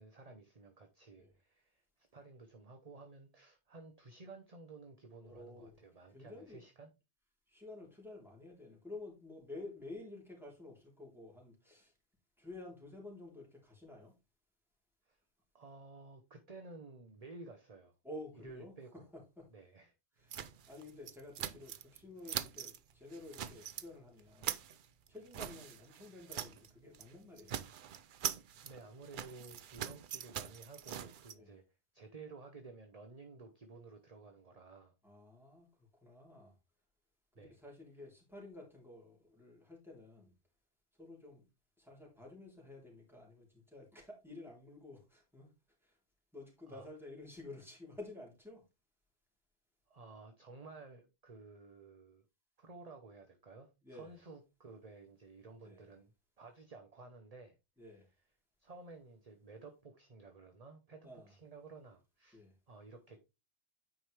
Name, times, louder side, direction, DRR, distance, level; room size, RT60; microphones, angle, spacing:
voice 1, 0.0-6.9 15.1-15.2 15.5-18.0 18.4-19.1 19.5-19.9 28.6-31.6 31.9-35.0 37.3-37.6 46.7-46.9 49.9-52.2 52.6-57.6 58.6-63.2, right 3 dB, 35° right, 1.0 m, -54 dB
voice 2, 5.2-5.8 6.1-6.6 7.5-11.9 12.4-14.1 18.0-18.7 19.4-19.5 20.2-24.6 25.1-27.6 31.4-31.6 35.0-36.5 37.4-40.3 41.0-41.4 41.8-45.5 45.8-46.0 46.3-48.6 53.8-54.1 55.6-55.9 57.8-58.1 61.0-61.3 62.3-62.5, left 2 dB, ahead, 3.5 m, -51 dB
sound 1, 20.3-22.0 22.2-22.8 23.1-23.9 24.2-26.7 26.9-27.1 27.4-31.3, right 9 dB, 55° right, 0.6 m, -43 dB
9.3 x 5.2 x 3.3 m
omnidirectional pair, 1.1 m